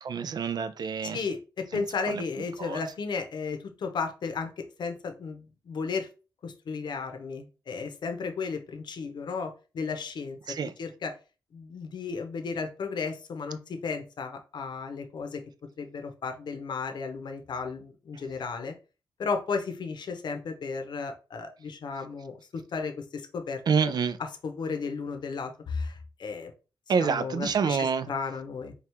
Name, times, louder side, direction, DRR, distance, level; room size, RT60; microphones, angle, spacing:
voice 1, 0.0-1.2 1.7-1.8 2.1-2.2 2.6-2.8 10.5-10.7 23.7-24.2 26.9-28.1, right 6 dB, 60° right, 0.4 m, -27 dB
voice 2, 1.1-6.1 6.4-10.4 10.8-11.2 11.5-15.4 15.8-18.7 19.2-23.9 24.2-26.5 27.0-28.7, left 5 dB, 70° left, 0.8 m, -34 dB
4.5 x 2.4 x 3.4 m
cardioid pair, 80°, 8 cm